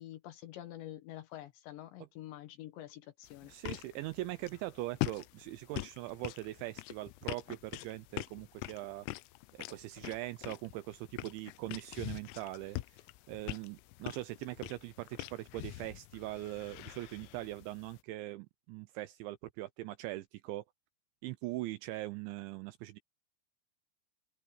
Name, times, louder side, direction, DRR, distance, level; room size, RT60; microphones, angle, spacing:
voice 1, 0.0-3.5, left 13 dB, 70° left, 3.3 m, -47 dB
sound 1, 3.2-18.0, left 20 dB, 90° left, 3.4 m, -44 dB
voice 2, 3.5-9.1 9.5-13.0 13.3-20.6 21.2-23.0, right 17 dB, 80° right, 2.7 m, -41 dB
open air
omnidirectional pair, 5.9 m